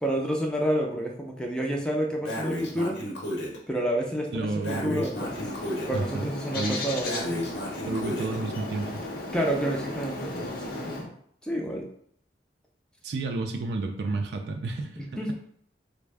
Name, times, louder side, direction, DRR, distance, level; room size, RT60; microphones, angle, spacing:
voice 1, 0.0-3.0 3.7-5.5 5.9-7.5 9.3-11.1 11.4-11.9 15.0-15.3, right 1 dB, 5° left, 0 dB, 0.4 m, -29 dB
Breathing, 2.2-3.6 4.6-6.0 7.0-8.4, left 1 dB, 85° left, 0.8 m, -33 dB
voice 2, 4.3-5.0 5.9-6.2 6.5-6.8 7.8-8.9 13.0-15.2, right 3 dB, 65° right, 4 dB, 0.3 m, -31 dB
Bird, 5.1-11.1, left 2 dB, 55° left, 0.6 m, -36 dB
3.4 x 2.1 x 3.4 m, 0.64 s
head